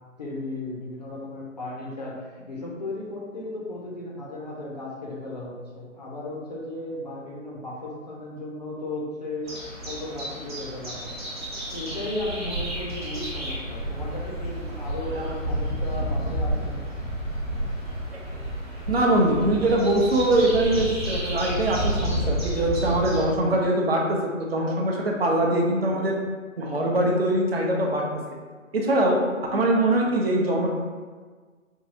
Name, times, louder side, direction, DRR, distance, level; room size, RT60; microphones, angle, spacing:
voice 1, 0.2-9.5 9.8-11.2 11.7-16.8, left 2 dB, 35° left, -4 dB, 0.5 m, -35 dB
sound 1, 9.4-23.3, equal, 20° right, 0.8 m, -30 dB
voice 2, 18.9-26.2 26.6-28.0 28.7-29.2 29.5-30.7, right 1 dB, 50° right, 0 dB, 0.6 m, -22 dB
4.6 x 2.3 x 2.7 m, 1.5 s
figure-of-eight pair, 140°, 40 cm